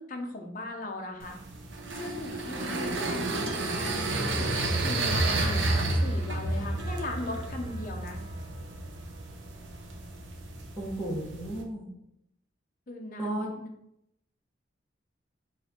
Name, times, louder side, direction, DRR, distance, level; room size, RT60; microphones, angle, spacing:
voice 1, 0.0-1.4 1.9-8.2 12.9-13.7, left 2 dB, 45° left, 3 dB, 0.7 m, -38 dB
sound 1, 1.2-11.6, right 2 dB, 85° right, 0.7 m, -31 dB
voice 2, 10.8-11.9 13.2-13.5, right 1 dB, 5° left, -6 dB, 1.2 m, -33 dB
4.8 x 2.6 x 4.3 m, 0.78 s
head